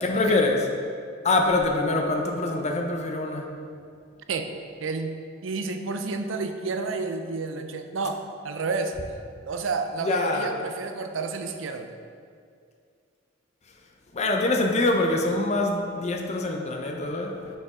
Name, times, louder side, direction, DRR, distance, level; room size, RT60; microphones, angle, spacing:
voice 1, 0.0-0.6 1.2-3.5 10.0-10.5 14.1-17.4, left 2 dB, 35° left, 2 dB, 0.6 m, -24 dB
voice 2, 4.8-5.1 5.4-8.2 8.4-9.0 9.5-11.9, right 4 dB, 75° right, 7 dB, 0.5 m, -30 dB
6.6 x 5.2 x 3.6 m, 2.2 s
head